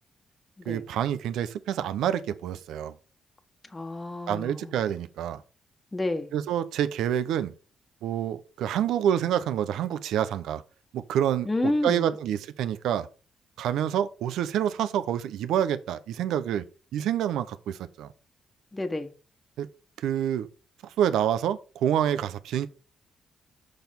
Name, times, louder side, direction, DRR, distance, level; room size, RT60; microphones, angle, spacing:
voice 1, 0.7-2.9 4.3-5.4 6.3-7.5 8.0-10.6 10.9-13.1 13.6-16.6 16.9-18.1 19.6-19.7 20.0-20.5 21.0-22.7, right 10 dB, 85° right, 0.7 m, -27 dB
voice 2, 3.7-4.7 5.9-6.3 11.4-12.2 18.7-19.1, left 2 dB, 20° left, 1.3 m, -30 dB
6.7 x 6.0 x 5.3 m
cardioid pair, 65°, 0 cm